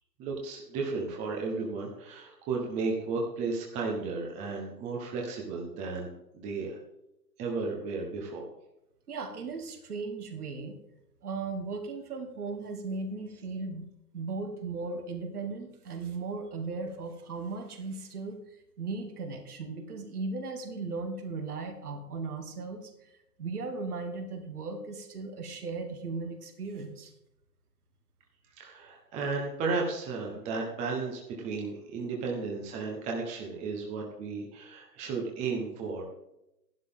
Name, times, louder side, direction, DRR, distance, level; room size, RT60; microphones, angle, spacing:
voice 1, 0.2-6.8 7.4-8.5 28.6-36.0, right 4 dB, 15° right, -1 dB, 1.2 m, -34 dB
voice 2, 9.1-10.8 11.2-13.8 14.1-18.4 18.8-23.1 23.4-27.1, right 3 dB, 60° right, 3 dB, 2.6 m, -37 dB
13.0 x 11.5 x 3.7 m, 0.88 s
hypercardioid pair, 145°, 50 cm